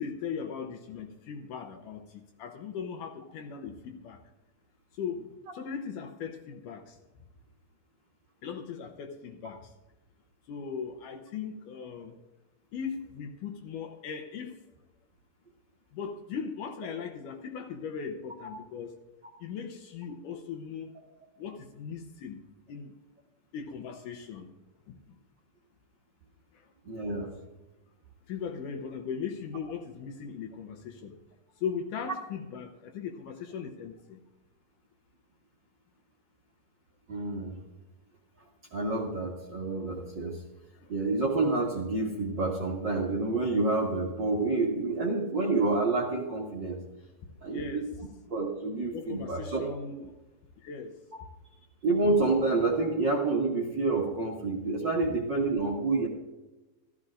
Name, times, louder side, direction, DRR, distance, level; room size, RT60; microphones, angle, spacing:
voice 1, 0.0-4.2 4.9-7.0 8.4-9.7 10.5-12.2 12.7-14.5 15.9-19.0 19.4-20.9 21.4-22.4 22.7-22.9 23.5-24.5 24.9-25.2 26.5-26.7 28.3-31.1 31.6-34.2 40.7-40.9 47.5-47.9 48.9-50.1 50.6-50.9, left 6 dB, 70° left, 5 dB, 2.1 m, -38 dB
voice 2, 26.9-27.3 37.1-37.6 38.7-40.4 40.9-46.8 47.4-47.8 48.3-49.6 51.1-51.2 51.8-56.1, right 3 dB, 50° right, -2 dB, 1.4 m, -28 dB
15.0 x 14.0 x 2.5 m, 1.1 s
omnidirectional pair, 4.2 m